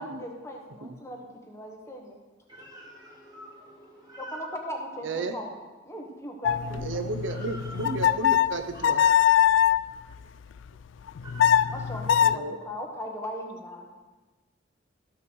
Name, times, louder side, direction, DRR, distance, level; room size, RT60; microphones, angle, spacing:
voice 1, 0.0-2.2 4.2-5.5 5.8-6.9 11.7-13.9, equal, 15° left, 1 dB, 1.2 m, -38 dB
voice 2, 2.5-4.4 7.4-7.5 8.7-8.8 11.2-11.4, equal, 20° right, -3 dB, 2.6 m, -46 dB
voice 3, 5.0-5.4 6.7-9.0 12.2-12.6, right 3 dB, 80° right, 7 dB, 0.7 m, -33 dB
sound 1, 6.4-9.9 11.1-12.4, left 10 dB, 75° left, 0.3 m, -22 dB
13.5 x 5.8 x 6.3 m, 1.3 s
head